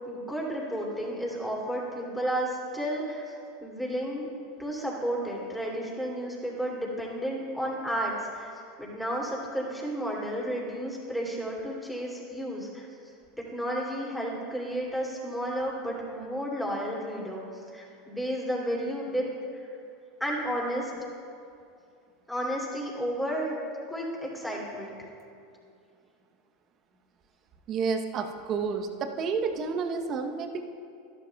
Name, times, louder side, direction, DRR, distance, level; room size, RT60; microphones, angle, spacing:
voice 1, 0.1-3.2 3.6-4.3 4.6-8.5 8.8-12.9 13.5-19.3 19.6-19.7 20.2-20.9 22.3-23.6 23.9-24.9, equal, 5° left, -4 dB, 2.7 m, -32 dB
voice 2, 27.7-30.7, right 5 dB, 40° right, 6 dB, 0.8 m, -30 dB
13.5 x 11.5 x 2.3 m, 2.4 s
hypercardioid pair, 95°, 0 cm